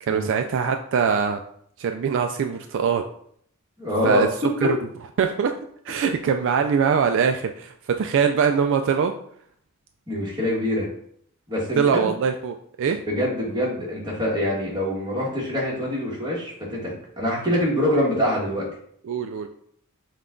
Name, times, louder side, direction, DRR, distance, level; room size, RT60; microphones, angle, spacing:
voice 1, 0.0-1.4 1.8-3.0 4.0-4.3 4.6-4.8 5.2-5.5 5.8-9.1 11.8-13.0 19.0-19.5, right 6 dB, 60° right, 6 dB, 0.3 m, -22 dB
voice 2, 3.8-4.2 4.6-4.7 10.1-10.9 11.5-12.1 13.1-18.6, left 1 dB, 20° right, -4 dB, 1.5 m, -25 dB
5.6 x 2.4 x 3.7 m, 0.65 s
head